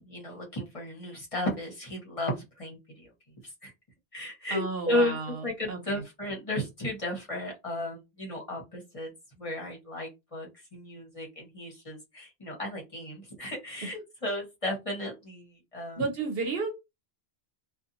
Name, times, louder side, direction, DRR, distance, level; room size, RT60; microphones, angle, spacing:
voice 1, 0.0-3.1 3.4-3.7 4.1-9.1 9.4-16.0, left 1 dB, 35° left, -1 dB, 1.0 m, -34 dB
voice 2, 4.5-6.0 16.0-16.7, right 3 dB, 70° right, 3 dB, 0.9 m, -32 dB
2.6 x 2.3 x 2.6 m, 0.22 s
omnidirectional pair, 1.0 m